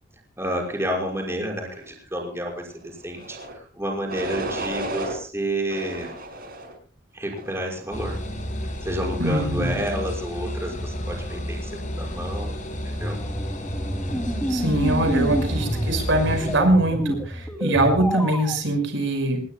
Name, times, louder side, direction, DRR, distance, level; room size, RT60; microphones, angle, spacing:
voice 1, 0.4-6.1 7.1-8.2 8.8-12.5 12.8-13.2 15.4-15.8, right 1 dB, 15° right, 0 dB, 5.8 m, -30 dB
sound 1, 3.1-3.5 4.1-5.2 5.7-6.7 7.3-7.7, right 2 dB, 55° right, 6.0 m, -33 dB
sound 2, 7.9-16.6, equal, 45° left, 6.1 m, -31 dB
voice 2, 9.2-9.8 14.5-19.4, right 1 dB, 85° right, 5 dB, 5.7 m, -22 dB
sound 3, 13.0-18.6, equal, 10° left, 2.6 m, -28 dB
27.5 x 20.0 x 2.3 m, 0.40 s
head